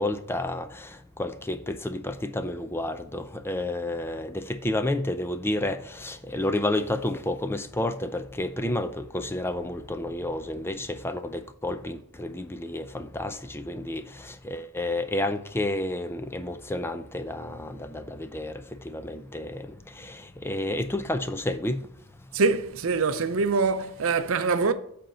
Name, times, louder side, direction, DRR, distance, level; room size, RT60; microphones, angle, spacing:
voice 1, 0.0-19.7 20.0-21.8, left 1 dB, 10° left, 0.5 m, -30 dB
voice 2, 22.3-24.7, right 4 dB, 65° right, 0.6 m, -24 dB
7.8 x 4.4 x 6.2 m
head